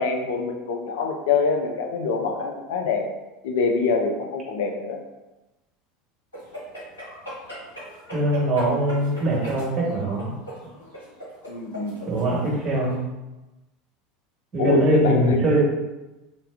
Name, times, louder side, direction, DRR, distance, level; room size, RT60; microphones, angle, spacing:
voice 1, 0.0-3.1 3.4-5.0 11.5-12.2 14.6-15.4, left 4 dB, 60° left, 2 dB, 0.4 m, -25 dB
sound 1, 6.3-13.0, equal, 80° left, 1.0 m, -40 dB
voice 2, 8.1-10.3 12.1-13.0 14.5-15.6, right 1 dB, 35° right, -4 dB, 1.1 m, -22 dB
4.2 x 2.2 x 2.4 m, 1.0 s
figure-of-eight pair, 75°, 0 cm